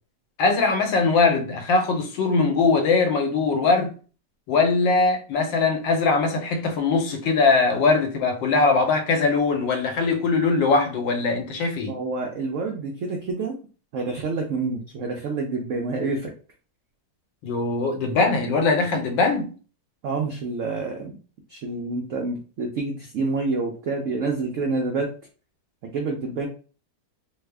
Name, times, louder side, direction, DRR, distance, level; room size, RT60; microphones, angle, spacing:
voice 1, 0.4-3.9 4.5-11.9 17.4-19.5, left 4 dB, 90° left, 1.4 m, -21 dB
voice 2, 11.8-13.6 13.9-16.3 20.0-21.2 21.5-25.1 25.8-26.5, right 3 dB, 80° right, 0.7 m, -28 dB
3.3 x 2.1 x 3.3 m
omnidirectional pair, 2.0 m